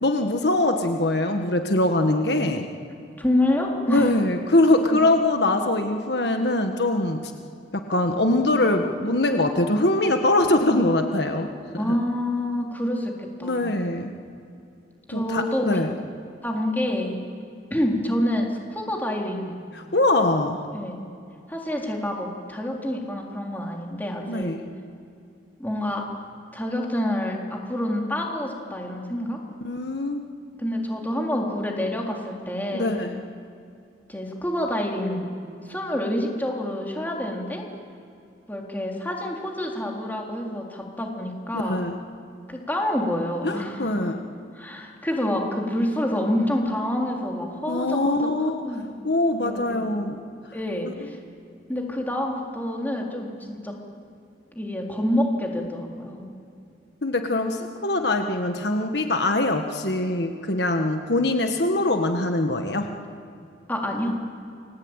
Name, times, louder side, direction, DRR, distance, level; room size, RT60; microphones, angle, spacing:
voice 1, 0.0-2.6 3.9-7.3 7.7-11.5 11.8-12.0 13.4-14.1 15.1-15.9 19.7-20.6 24.3-24.6 29.6-30.2 32.7-33.2 41.5-42.0 43.4-44.2 47.7-48.6 49.0-50.2 50.8-51.1 57.0-62.9, left 2 dB, 65° left, 5 dB, 1.6 m, -23 dB
voice 2, 3.2-4.1 4.9-5.0 11.8-13.7 15.1-15.8 16.4-17.2 17.7-19.6 20.7-21.0 21.5-24.6 25.6-26.1 26.5-29.4 30.6-32.9 34.1-35.3 35.7-37.6 38.5-41.8 42.5-44.2 44.5-48.2 48.6-48.9 49.4-50.1 50.5-51.2 51.7-53.8 54.5-56.3 63.7-64.2, left 1 dB, 10° left, 0 dB, 3.7 m, -27 dB
29.0 x 21.5 x 9.0 m, 2.6 s
head